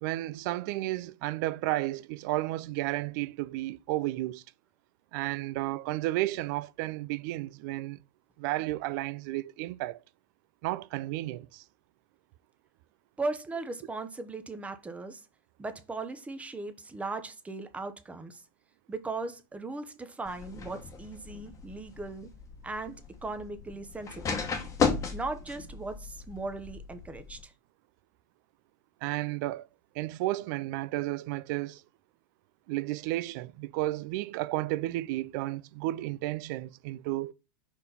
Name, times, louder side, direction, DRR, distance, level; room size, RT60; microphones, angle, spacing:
voice 1, 0.0-4.4 5.1-8.0 8.4-10.0 10.6-11.6 29.0-29.7 29.9-31.8 32.7-37.3, right 17 dB, 55° right, 0.4 m, -32 dB
voice 2, 13.2-15.2 15.6-18.4 18.9-22.3 22.6-24.5 25.1-27.5, right 3 dB, 10° right, 0.9 m, -38 dB
sound 1, 20.3-27.4, left 5 dB, 25° left, 1.2 m, -35 dB
5.1 x 4.5 x 4.1 m
hypercardioid pair, 110°, 12 cm